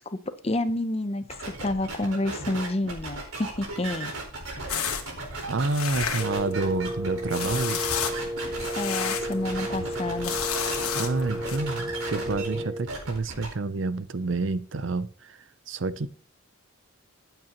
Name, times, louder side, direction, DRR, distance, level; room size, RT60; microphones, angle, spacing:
voice 1, 0.0-4.1 4.7-4.8 8.8-10.4, left 2 dB, 25° left, 0.6 m, -29 dB
sound 1, 1.3-8.8 9.2-10.8 11.2-13.5, right 2 dB, 80° right, 4.5 m, -36 dB
sound 2, 4.7-11.6, left 7 dB, 85° left, 1.7 m, -33 dB
voice 2, 5.4-7.8 10.9-16.1, right 3 dB, 55° right, 0.6 m, -29 dB
Wind instrument woodwind instrument, 6.2-12.9, right 1 dB, 15° right, 0.4 m, -33 dB
14.5 x 9.0 x 3.0 m
head